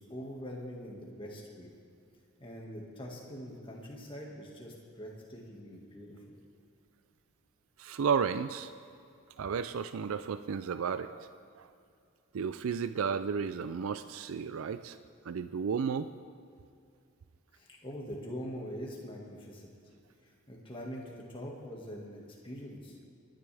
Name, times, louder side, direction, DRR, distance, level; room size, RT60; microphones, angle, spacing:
voice 1, 0.0-1.7 2.4-6.3 17.5-19.7 20.2-23.0, equal, 25° left, -2 dB, 1.9 m, -43 dB
voice 2, 7.8-8.7 9.4-11.3 11.6-11.7 12.3-15.0 15.2-16.1, right 6 dB, 85° right, 11 dB, 0.4 m, -33 dB
27.0 x 10.5 x 3.5 m, 2.4 s
head